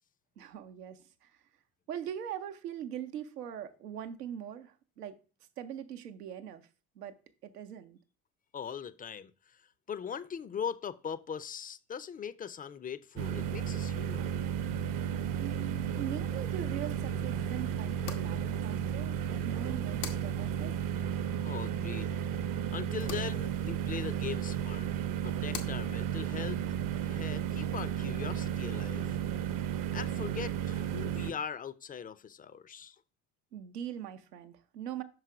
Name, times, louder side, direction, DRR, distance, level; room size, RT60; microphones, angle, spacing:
voice 1, 0.4-1.3 1.9-5.2 5.6-6.7 7.0-7.2 7.4-8.0 15.3-20.8 33.5-35.0, right 10 dB, 85° right, 0.7 m, -41 dB
voice 2, 8.5-9.6 9.9-14.3 21.4-22.2 22.7-24.9 25.2-26.6 27.0-29.2 29.9-33.0, left 7 dB, 20° left, 0.4 m, -40 dB
sound 1, 13.2-31.3, right 9 dB, 45° right, 0.7 m, -33 dB
sound 2, 15.9-28.8, left 6 dB, 90° left, 0.9 m, -51 dB
5.7 x 4.8 x 4.8 m
hypercardioid pair, 50°, 46 cm